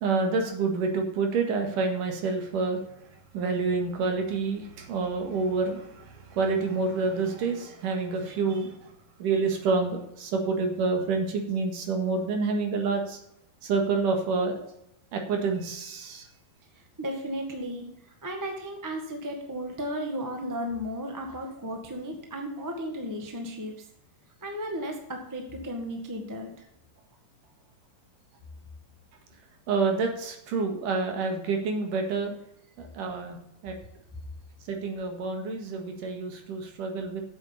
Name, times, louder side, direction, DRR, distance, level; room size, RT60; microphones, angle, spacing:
voice 1, 0.0-2.8 3.3-8.9 9.2-13.2 13.6-14.6 15.1-16.3 29.7-32.3 32.8-33.8 34.7-37.2, right 4 dB, 70° right, 3 dB, 3.2 m, -28 dB
voice 2, 16.7-23.7 24.4-26.6, equal, 25° right, 3 dB, 0.4 m, -35 dB
8.4 x 8.0 x 7.2 m, 0.80 s
omnidirectional pair, 4.0 m